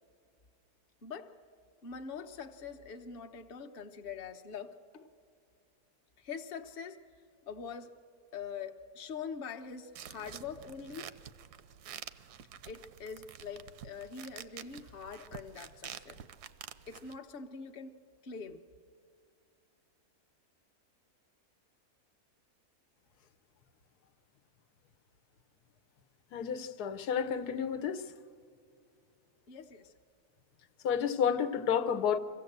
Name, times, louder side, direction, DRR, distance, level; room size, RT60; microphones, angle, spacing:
voice 1, 1.8-5.1 6.2-7.0 7.5-7.9 8.3-11.1 12.7-16.2 16.9-17.9 18.2-18.6 29.5-29.9, left 6 dB, 40° left, 1.0 m, -44 dB
sound 1, 10.0-17.2, right 9 dB, 85° right, 1.2 m, -49 dB
voice 2, 26.3-28.1 30.8-32.2, left 7 dB, 85° left, 1.3 m, -31 dB
24.5 x 16.0 x 8.0 m
omnidirectional pair, 1.6 m